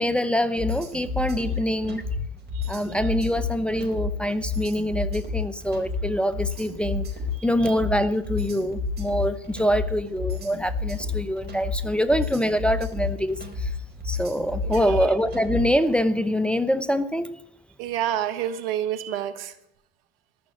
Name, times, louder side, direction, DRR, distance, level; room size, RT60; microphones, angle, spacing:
voice 1, 0.0-2.0 2.7-7.1 7.4-13.7 14.0-17.3, equal, 5° left, 10 dB, 0.8 m, -25 dB
sound 1, 0.6-15.8, left 4 dB, 35° right, 4.8 m, -30 dB
voice 2, 7.3-7.7 14.6-15.1 17.8-19.5, right 11 dB, 75° right, 10 dB, 1.2 m, -29 dB
14.0 x 6.2 x 10.0 m, 0.79 s
hypercardioid pair, 70°, 29 cm